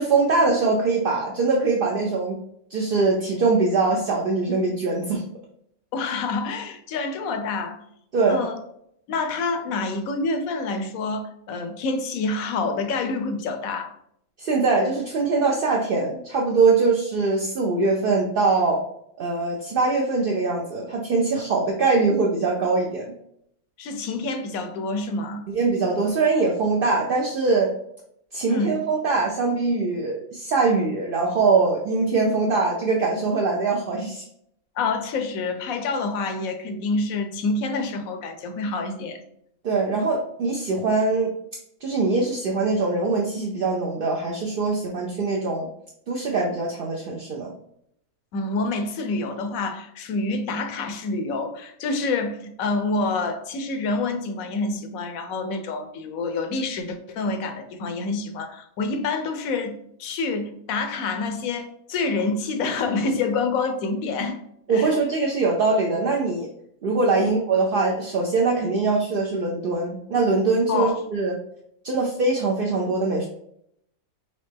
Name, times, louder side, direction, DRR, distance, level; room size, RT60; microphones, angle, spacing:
voice 1, 0.0-2.4 2.7-5.2 8.1-8.4 14.4-18.8 19.2-23.1 25.5-27.7 28.3-34.2 39.6-41.3 41.8-45.7 46.1-47.5 64.7-66.5 66.8-71.4 71.8-73.3, right 3 dB, 60° right, 0.6 m, -22 dB
voice 2, 5.9-7.8 8.2-8.6 9.1-13.9 23.8-25.4 28.5-28.8 34.8-39.2 48.3-64.4 64.7-65.0 67.2-67.3 70.7-71.0, left 3 dB, 75° left, 1.0 m, -27 dB
4.3 x 3.1 x 3.3 m
omnidirectional pair, 1.5 m